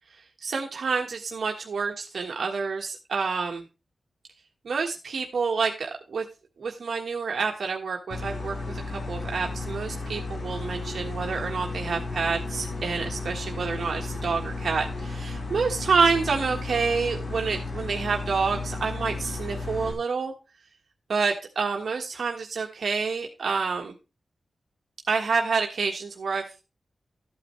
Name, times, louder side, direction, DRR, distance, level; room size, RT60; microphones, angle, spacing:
voice 1, 0.4-3.6 4.6-6.2 6.6-20.3 21.1-23.9 25.1-26.4, right 5 dB, 80° right, 1 dB, 1.5 m, -28 dB
sound 1, 8.1-19.9, left 3 dB, 85° left, 3.9 m, -34 dB
14.0 x 8.7 x 3.3 m, 0.30 s
wide cardioid pair, 145°, 0 cm